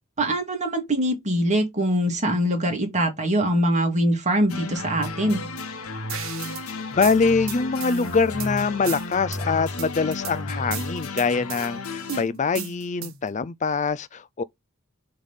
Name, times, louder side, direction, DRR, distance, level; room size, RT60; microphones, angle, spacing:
voice 1, 0.2-5.4, right 1 dB, 35° right, 2.5 m, -23 dB
sound 1, 4.5-12.2, left 2 dB, 80° left, 1.4 m, -33 dB
sound 2, 6.1-6.6 7.0-8.5 8.9-9.4 9.8-10.3 10.7-11.7 12.1-13.3, right 9 dB, 65° right, 1.3 m, -35 dB
voice 2, 6.4-14.4, left 4 dB, 35° left, 0.5 m, -24 dB
7.2 x 3.5 x 5.7 m
head